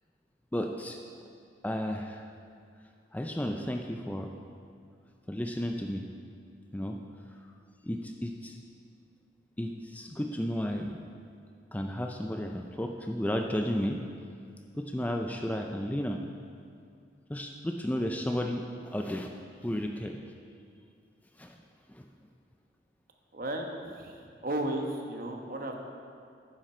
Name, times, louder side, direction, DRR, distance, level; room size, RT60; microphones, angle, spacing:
voice 1, 0.5-1.0 1.6-2.2 3.1-4.3 5.3-6.0 6.7-7.0 7.8-8.6 9.6-11.0 11.7-14.0 14.8-16.2 17.3-18.6 18.9-19.3 19.6-20.2 21.4-21.6 21.9-22.1, equal, 10° left, 3 dB, 0.4 m, -33 dB
voice 2, 23.3-25.7, right 1 dB, 50° right, 2 dB, 1.1 m, -34 dB
11.5 x 10.0 x 4.4 m, 2.3 s
head